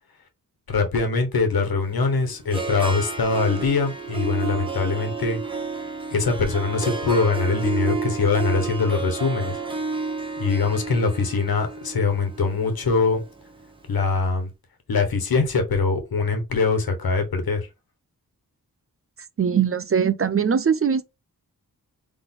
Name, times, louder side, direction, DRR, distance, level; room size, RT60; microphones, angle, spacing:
voice 1, 0.7-5.4 6.1-9.6 9.9-10.0 10.4-13.2 13.9-14.5 14.9-17.7, left 4 dB, 80° left, 1.3 m, -23 dB
Harp, 1.8-14.0, right 4 dB, 15° right, 1.1 m, -31 dB
voice 2, 19.4-21.1, right 7 dB, 40° right, 0.5 m, -21 dB
3.9 x 3.5 x 3.8 m
wide cardioid pair, 85°, 36 cm